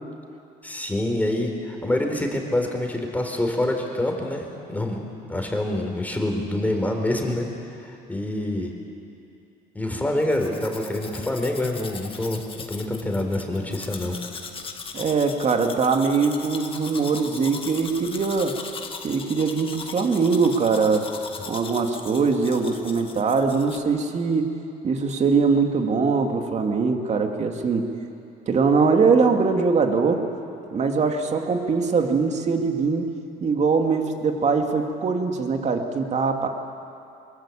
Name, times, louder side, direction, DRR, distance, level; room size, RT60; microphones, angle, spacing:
voice 1, 0.6-7.5 7.8-8.7 9.7-14.2, left 1 dB, 10° left, 2 dB, 4.1 m, -26 dB
Domestic sounds home sounds, 10.2-23.8, left 5 dB, 30° left, 1.8 m, -39 dB
voice 2, 14.9-18.5 19.0-21.1 21.5-24.5 24.8-27.9 28.5-30.3 30.7-33.1 33.4-36.5, right 4 dB, 40° right, 4 dB, 2.6 m, -22 dB
24.0 x 22.0 x 8.7 m, 2.6 s
cardioid pair, 110°, 17 cm